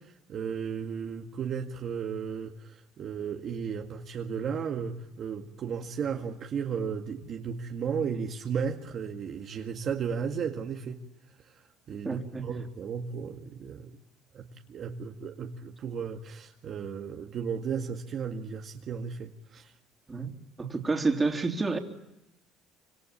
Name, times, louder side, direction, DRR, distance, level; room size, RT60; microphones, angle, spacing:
voice 1, 0.0-11.0 11.4-11.6 11.9-13.9 14.3-19.7, right 6 dB, 45° right, 2.0 m, -34 dB
voice 2, 12.0-12.5 20.1-20.3 20.6-21.8, right 3 dB, 15° right, 3.5 m, -29 dB
26.5 x 26.0 x 8.7 m
cardioid pair, 130°, 0 cm